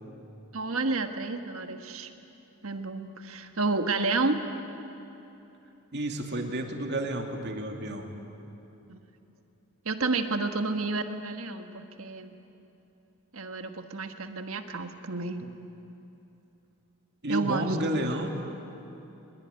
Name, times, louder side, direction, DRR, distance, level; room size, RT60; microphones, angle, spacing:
voice 1, 0.5-2.1 2.6-4.4 8.9-9.0 9.8-12.4 13.3-15.6 17.3-17.8, right 3 dB, 70° right, 6 dB, 1.5 m, -30 dB
voice 2, 5.9-8.1 17.2-18.3, right 1 dB, 50° right, 3 dB, 2.6 m, -30 dB
23.0 x 21.5 x 9.8 m, 2.9 s
head